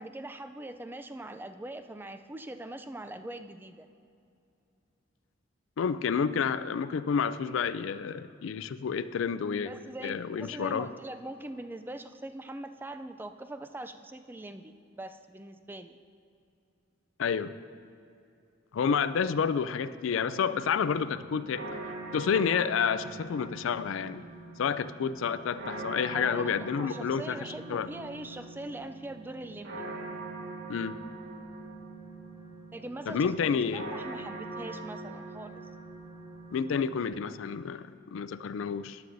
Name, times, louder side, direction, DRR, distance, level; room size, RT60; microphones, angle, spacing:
voice 1, 0.0-3.9 9.6-16.0 26.1-29.9 32.7-33.3 33.7-35.6, right 1 dB, 10° right, 9 dB, 0.3 m, -42 dB
voice 2, 5.8-9.7 10.0-10.9 17.2-17.5 18.7-21.7 22.1-24.2 24.6-27.9 30.7-31.0 33.1-33.9 36.5-39.0, left 6 dB, 75° left, 14 dB, 0.4 m, -29 dB
sound 1, 20.4-37.0, right 2 dB, 80° right, 1.9 m, -43 dB
14.0 x 10.5 x 2.6 m, 2.6 s
head